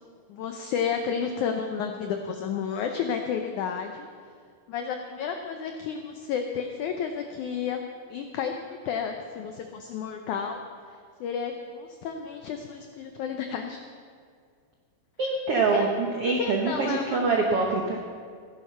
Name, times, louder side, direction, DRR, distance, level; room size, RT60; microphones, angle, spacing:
voice 1, 0.3-4.1 4.7-10.6 10.9-13.8 15.7-15.8 16.4-17.2, left 7 dB, 85° left, 5 dB, 1.7 m, -32 dB
voice 2, 15.2-18.0, right 3 dB, 85° right, 1 dB, 1.3 m, -25 dB
16.0 x 11.0 x 5.5 m, 2.1 s
omnidirectional pair, 4.5 m